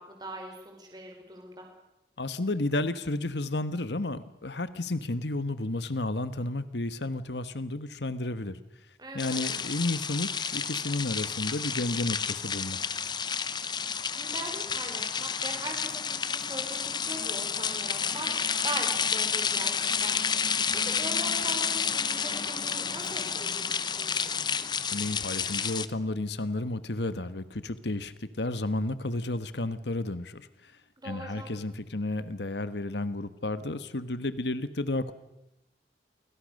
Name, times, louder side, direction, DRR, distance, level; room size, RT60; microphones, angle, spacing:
voice 1, 0.0-1.7 9.0-9.4 13.9-18.3 18.6-20.1 20.5-20.6 20.8-24.3 31.0-31.5, right 1 dB, 25° right, 2 dB, 5.1 m, -41 dB
voice 2, 2.2-8.6 9.1-12.9 24.9-30.7 31.0-35.1, left 2 dB, 80° left, 13 dB, 1.4 m, -32 dB
sound 1, 9.2-25.9, left 6 dB, 25° left, 0.9 m, -30 dB
29.5 x 24.0 x 6.6 m, 0.90 s
head